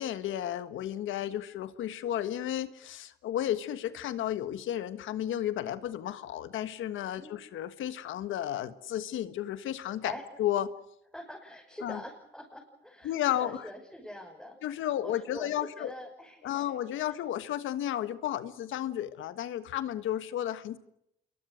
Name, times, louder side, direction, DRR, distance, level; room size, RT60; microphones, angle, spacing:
voice 1, 0.0-10.1 10.4-10.7 11.8-12.0 13.0-13.7 14.6-15.9 16.4-20.8, left 11 dB, 80° left, 12 dB, 1.5 m, -33 dB
voice 2, 11.1-17.1, equal, ahead, -1 dB, 6.2 m, -45 dB
27.5 x 22.5 x 6.5 m, 0.79 s
cardioid pair, 90°, 20 cm